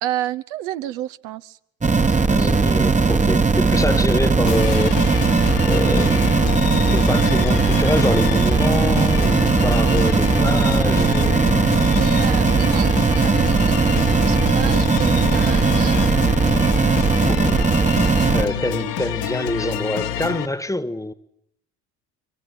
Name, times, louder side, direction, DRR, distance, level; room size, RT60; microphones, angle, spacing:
voice 1, 0.0-1.6 3.7-3.9 11.0-11.2 11.5-13.9 14.2-16.8 18.3-18.8 19.6-19.7, right 12 dB, 60° right, 1.1 m, -31 dB
sound 1, 1.8-18.4, right 4 dB, 15° right, 1.4 m, -18 dB
voice 2, 2.3-5.0 5.6-11.6 17.3-17.6 18.3-21.1, left 1 dB, 5° left, 1.6 m, -26 dB
sound 2, 4.5-20.5, left 10 dB, 75° left, 2.2 m, -28 dB
25.0 x 24.5 x 9.4 m
figure-of-eight pair, 55°, 49 cm